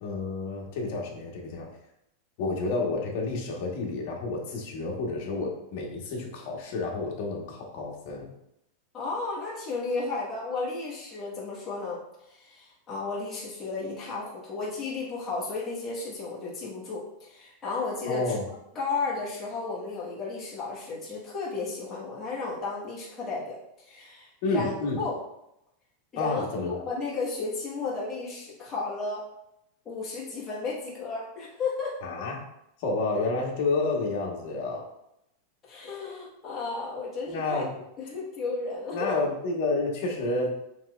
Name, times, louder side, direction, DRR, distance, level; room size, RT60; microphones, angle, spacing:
voice 1, 0.0-1.7 2.4-8.3 18.1-18.5 24.4-25.1 26.2-26.8 32.0-32.4 32.8-34.9 37.3-37.8 38.9-40.5, left 3 dB, 55° left, 0 dB, 1.1 m, -30 dB
voice 2, 8.9-12.0 12.3-18.3 18.7-23.6 23.9-25.1 26.1-26.4 26.7-29.2 29.8-32.0 35.7-37.7 38.0-39.1, left 3 dB, 20° left, -6 dB, 1.3 m, -33 dB
5.7 x 3.2 x 2.3 m, 0.82 s
supercardioid pair, 155°, 0 cm